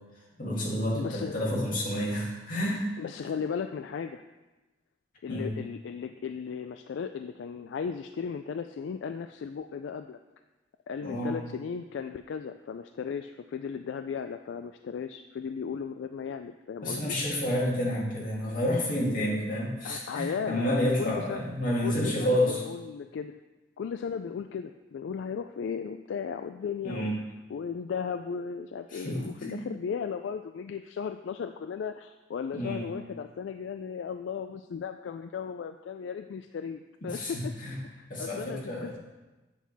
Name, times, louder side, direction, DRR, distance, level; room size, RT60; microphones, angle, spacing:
voice 1, 0.4-2.8 5.3-5.5 11.0-11.4 16.8-22.6 26.8-27.1 28.9-29.6 32.5-32.8 37.1-37.8 38.1-38.9, left 1 dB, 45° left, -4 dB, 2.2 m, -29 dB
voice 2, 0.9-1.3 3.0-4.2 5.2-10.2 10.9-17.2 19.8-21.4 21.8-23.4 23.8-27.1 27.5-37.5 37.8-39.0, left 6 dB, 70° left, 8 dB, 0.3 m, -36 dB
8.1 x 6.1 x 4.1 m, 1.1 s
head